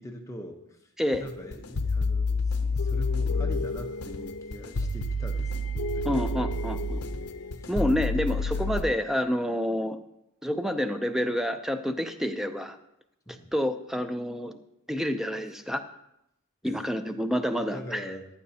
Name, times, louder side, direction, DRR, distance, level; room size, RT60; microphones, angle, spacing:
voice 1, 0.0-0.9 1.2-6.2 7.6-7.7 8.1-8.8 13.3-13.5 16.6-17.2 17.6-18.3, equal, 15° left, 2 dB, 1.0 m, -42 dB
sound 1, 1.1-8.8, left 2 dB, 75° left, 0.8 m, -29 dB
voice 2, 6.0-7.0 7.7-10.0 10.4-12.8 13.5-14.6 14.9-15.8 16.6-18.0, equal, ahead, 8 dB, 0.5 m, -28 dB
14.5 x 11.5 x 2.8 m, 0.84 s
head